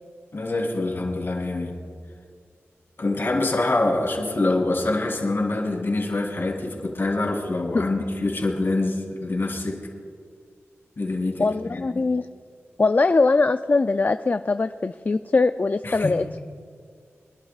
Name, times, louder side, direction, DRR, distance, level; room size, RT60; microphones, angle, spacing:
voice 1, 0.3-1.8 3.0-9.9 11.0-11.9 15.8-16.1, left 2 dB, 55° left, -1 dB, 3.2 m, -25 dB
voice 2, 11.4-12.3 12.8-16.4, left 3 dB, 40° left, 10 dB, 0.3 m, -21 dB
26.0 x 11.5 x 2.4 m, 2.2 s
wide cardioid pair, 60°, 5 cm